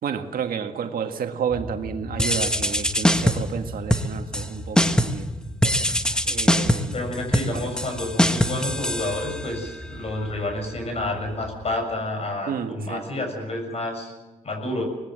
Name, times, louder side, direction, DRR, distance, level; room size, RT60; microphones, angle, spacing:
voice 1, 0.0-5.3 6.2-7.0 7.5-7.7 12.5-13.2, right 7 dB, 90° right, 6 dB, 1.7 m, -31 dB
sound 1, 1.5-11.9, left 1 dB, 30° left, 5.4 m, -39 dB
sound 2, 2.2-3.6 3.9-4.5 4.8-5.3 5.6-9.6, equal, 5° left, 1.4 m, -22 dB
voice 2, 6.9-14.1 14.4-14.8, left 1 dB, 45° left, 5 dB, 7.0 m, -29 dB
24.5 x 19.5 x 7.6 m, 1.1 s
wide cardioid pair, 110°, 14 cm